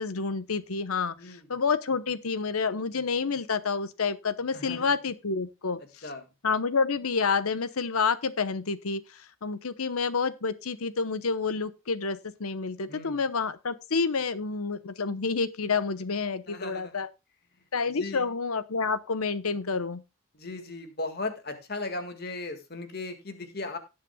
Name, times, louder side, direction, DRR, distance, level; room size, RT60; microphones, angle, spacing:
voice 1, 0.0-6.1 6.4-17.1 17.7-20.0, left 4 dB, 90° left, 0.9 m, -29 dB
voice 2, 1.2-1.5 4.5-4.9 6.0-6.2 12.9-13.2 16.5-17.0 17.9-18.3 20.3-23.8, left 2 dB, 45° left, 1.8 m, -37 dB
18.0 x 7.5 x 2.3 m
head